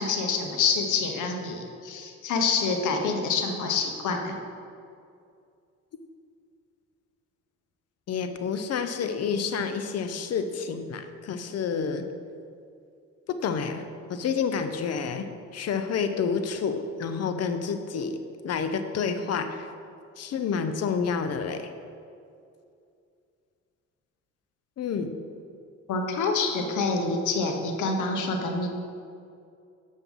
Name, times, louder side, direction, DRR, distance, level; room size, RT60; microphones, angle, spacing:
voice 1, 0.0-4.3 25.9-28.7, left 4 dB, 80° left, 4 dB, 1.1 m, -27 dB
voice 2, 8.1-12.1 13.3-13.8 14.1-15.3 15.5-18.2 18.4-19.7 20.2-21.7 24.8-25.1, left 6 dB, 55° left, 8 dB, 0.7 m, -29 dB
7.5 x 5.5 x 5.4 m, 2.4 s
cardioid pair, 90°, 30 cm